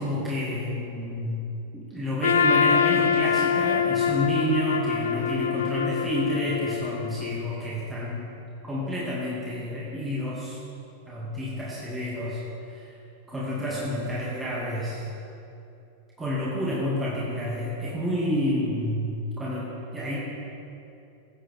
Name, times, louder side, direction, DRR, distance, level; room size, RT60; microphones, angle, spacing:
voice 1, 0.0-1.4 1.7-8.2 8.6-10.6 11.1-12.4 12.7-13.0 13.3-15.1 16.2-19.7 19.9-20.2, equal, 15° right, -7 dB, 2.2 m, -29 dB
Trumpet, 2.2-7.3, left 7 dB, 65° left, 0.4 m, -24 dB
16.5 x 7.6 x 3.6 m, 2.7 s
figure-of-eight pair, 90°, 0 cm